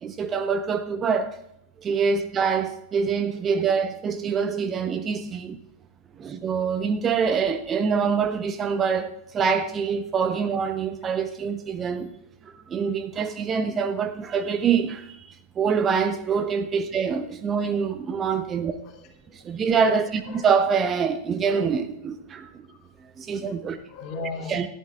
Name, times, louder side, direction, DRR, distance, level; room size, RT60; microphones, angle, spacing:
voice 1, 0.0-1.4 1.8-5.6 6.2-12.1 12.4-18.7 19.3-22.5 23.2-23.8 24.5-24.7, right 6 dB, 25° right, 0.8 m, -25 dB
voice 2, 18.8-19.3 20.2-20.5 22.7-22.9 23.9-24.7, left 3 dB, 40° left, 2.7 m, -38 dB
18.0 x 13.0 x 2.5 m
figure-of-eight pair, 90°, 0 cm